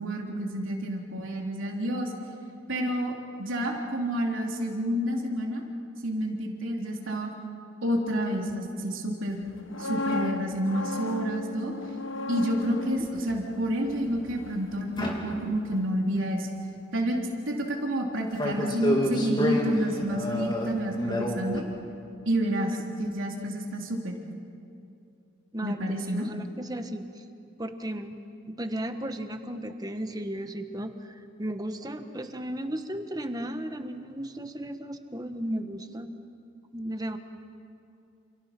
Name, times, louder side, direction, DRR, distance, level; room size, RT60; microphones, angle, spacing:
voice 1, 0.0-2.1 2.7-3.1 3.4-5.6 6.0-7.3 7.8-9.4 9.8-11.7 12.3-16.5 16.9-17.2 17.5-21.6 22.3-24.2 25.6-26.3, right 1 dB, 85° right, 0 dB, 3.6 m, -29 dB
sound 1, 9.5-15.4 15.7-15.9, left 2 dB, 80° left, 1.3 m, -36 dB
sound 2, 15.0-15.9 18.4-21.6, left 1 dB, 25° left, 3.0 m, -29 dB
voice 2, 26.1-27.2 27.6-28.2 28.5-36.1 36.7-37.2, right 1 dB, 20° right, 7 dB, 1.3 m, -35 dB
29.0 x 28.5 x 6.1 m, 2.5 s
head